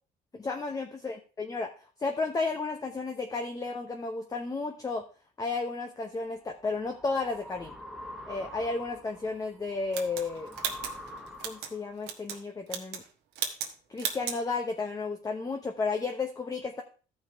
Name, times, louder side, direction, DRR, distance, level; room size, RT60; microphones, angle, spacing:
voice 1, 0.3-1.7 2.0-5.1 5.4-7.7 8.3-10.5 11.4-13.0 13.9-16.8, left 3 dB, 20° left, 4 dB, 0.9 m, -33 dB
sound 1, 6.1-11.9, left 1 dB, ahead, 1.1 m, -46 dB
sound 2, 9.9-11.7 12.0-12.4 12.7-13.1 13.3-13.7 14.0-14.4, right 8 dB, 85° right, 1.4 m, -35 dB
14.0 x 5.4 x 3.4 m, 0.36 s
cardioid pair, 110°, 17 cm